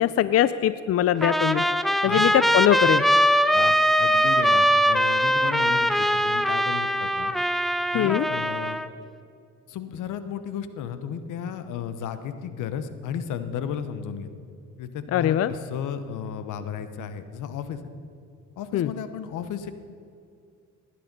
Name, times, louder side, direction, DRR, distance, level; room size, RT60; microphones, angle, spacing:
voice 1, 0.0-1.6 2.0-3.0 7.9-8.3 15.1-15.5 18.7-18.9, left 11 dB, 50° left, 15 dB, 0.5 m, -22 dB
Trumpet, 1.2-8.9, equal, ahead, 0.6 m, -22 dB
voice 2, 3.5-7.3 7.9-8.8 9.7-14.3 14.8-17.8 18.6-19.7, left 8 dB, 85° left, 11 dB, 1.0 m, -34 dB
18.0 x 10.0 x 5.3 m, 2.4 s
cardioid pair, 90°, 30 cm